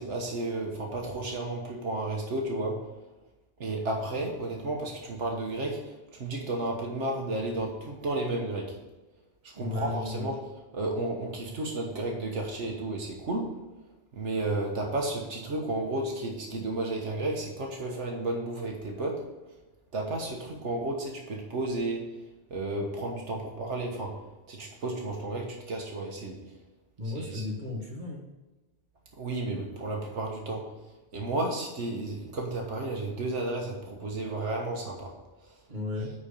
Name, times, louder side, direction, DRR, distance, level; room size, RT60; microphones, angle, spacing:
voice 1, 0.0-2.9 3.6-8.8 9.4-10.4 10.7-13.6 14.1-19.3 19.9-24.2 24.5-26.5 27.1-27.4 29.2-30.7 31.1-35.1 35.4-35.5, right 2 dB, 80° right, 0 dB, 1.6 m, -32 dB
voice 2, 9.6-10.3 27.0-28.2 35.7-36.1, left 3 dB, 40° right, -1 dB, 2.0 m, -35 dB
10.5 x 4.4 x 5.3 m, 1.2 s
omnidirectional pair, 1.2 m